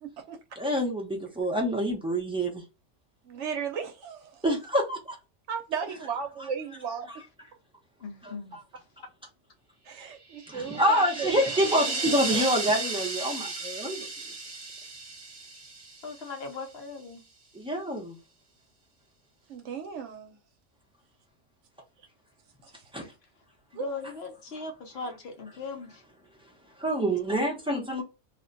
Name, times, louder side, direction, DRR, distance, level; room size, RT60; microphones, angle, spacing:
voice 1, 0.0-0.4 3.2-4.4 5.5-7.1 9.8-11.9 19.5-20.4 23.7-23.9, right 6 dB, 70° right, 0.9 m, -35 dB
voice 2, 0.6-2.6 4.4-5.2 8.2-8.3 10.5-14.1 17.5-18.2 22.9-23.1 26.8-28.0, equal, 5° right, 0.5 m, -27 dB
voice 3, 8.0-8.6 16.0-17.2 23.7-26.0, left 3 dB, 60° left, 0.8 m, -38 dB
sound 1, 10.3-16.5, right 3 dB, 40° right, 0.8 m, -34 dB
2.4 x 2.2 x 3.8 m
omnidirectional pair, 1.3 m